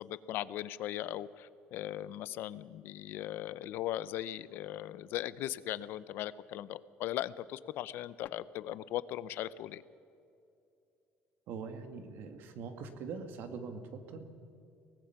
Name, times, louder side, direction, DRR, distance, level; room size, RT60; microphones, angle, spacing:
voice 1, 0.0-9.8, left 13 dB, 65° left, 17 dB, 0.7 m, -38 dB
voice 2, 11.5-14.2, right 5 dB, 65° right, 7 dB, 2.2 m, -43 dB
24.0 x 18.5 x 5.9 m, 2.6 s
cardioid pair, 150°, 4 cm